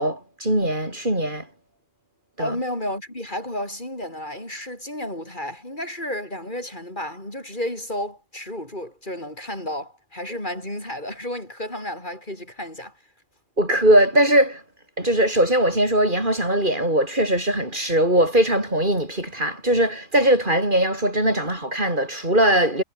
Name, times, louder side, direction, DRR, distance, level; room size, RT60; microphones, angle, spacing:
voice 1, 0.0-1.5 2.4-2.6 13.6-14.6 15.0-22.8, right 1 dB, 40° right, 6.3 m, -20 dB
voice 2, 2.4-13.0, left 1 dB, 40° left, 7.2 m, -32 dB
omnidirectional pair, 1.3 m